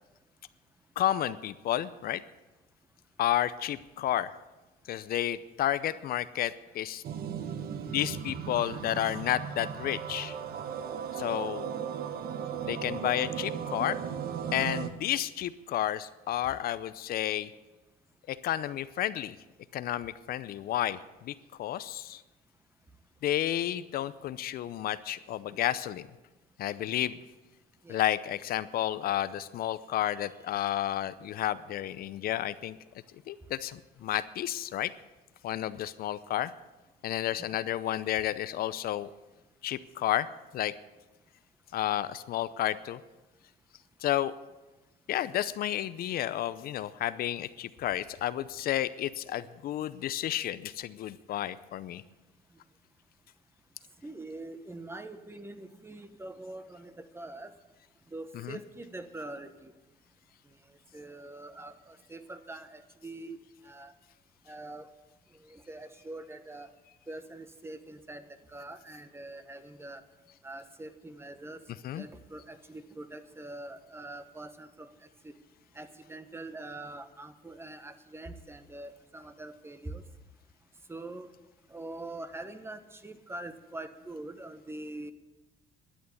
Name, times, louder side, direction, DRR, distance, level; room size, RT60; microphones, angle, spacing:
voice 1, 1.0-2.2 3.2-4.3 4.9-7.0 7.9-10.4 11.1-11.7 12.6-14.0 14.5-17.5 18.3-19.4 19.7-21.3 21.6-22.2 23.2-26.1 26.6-27.2 27.9-32.8 33.3-34.9 35.4-36.5 37.0-39.1 39.6-40.3 40.5-40.7 41.7-43.0 44.0-44.3 45.1-52.0 58.3-58.6 71.8-72.1, left 12 dB, 60° left, 15 dB, 0.6 m, -31 dB
sound 1, 7.0-14.9, right 8 dB, 60° right, 1.1 m, -36 dB
voice 2, 54.0-57.5 58.1-59.7 60.9-63.4 63.6-63.9 64.5-64.9 65.4-66.7 67.1-70.0 70.4-71.6 72.0-74.9 75.2-75.3 75.7-80.0 80.9-81.3 81.7-85.1, right 2 dB, 15° right, 10 dB, 1.1 m, -44 dB
12.5 x 9.4 x 9.6 m, 1.1 s
cardioid pair, 110°, 17 cm